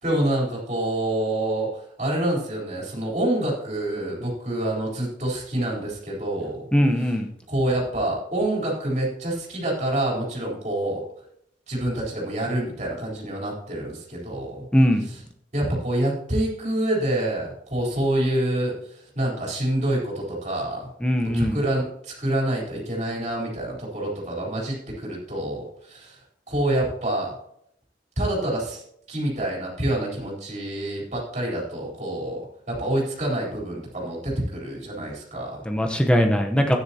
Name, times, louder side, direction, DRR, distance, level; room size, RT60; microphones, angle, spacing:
voice 1, 0.0-6.7 7.0-7.1 7.5-11.0 11.7-14.7 15.1-15.2 15.5-20.9 21.3-27.3 28.2-28.8 29.1-35.6, right 1 dB, 40° right, -3 dB, 3.8 m, -27 dB
voice 2, 6.7-7.3 14.7-15.1 21.0-21.6 35.7-36.8, equal, 5° left, 4 dB, 0.9 m, -20 dB
13.0 x 9.8 x 2.9 m, 0.71 s
head